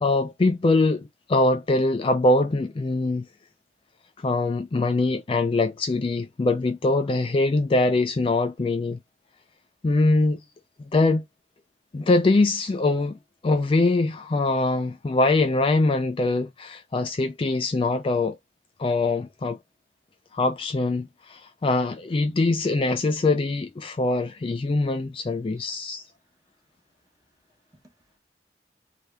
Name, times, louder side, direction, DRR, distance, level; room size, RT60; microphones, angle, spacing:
voice 1, 0.0-3.3 4.2-9.0 9.8-10.4 10.9-11.2 11.9-13.1 13.4-18.4 18.8-19.6 20.3-26.0, left 2 dB, 30° left, 0.3 m, -23 dB
voice 2, 27.7-28.2, right 1 dB, 20° right, 1.1 m, -60 dB
3.3 x 2.8 x 2.2 m
head